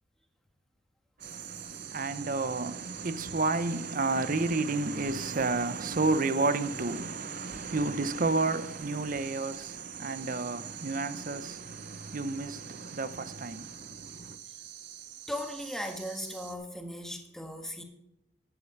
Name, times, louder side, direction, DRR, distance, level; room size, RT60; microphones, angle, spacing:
voice 1, 1.2-14.4, right 3 dB, 45° right, 0.7 m, -31 dB
sound 1, 1.2-16.6, right 10 dB, 65° right, 1.3 m, -44 dB
voice 2, 15.3-17.8, left 1 dB, ahead, 1.5 m, -37 dB
12.0 x 11.0 x 4.5 m
head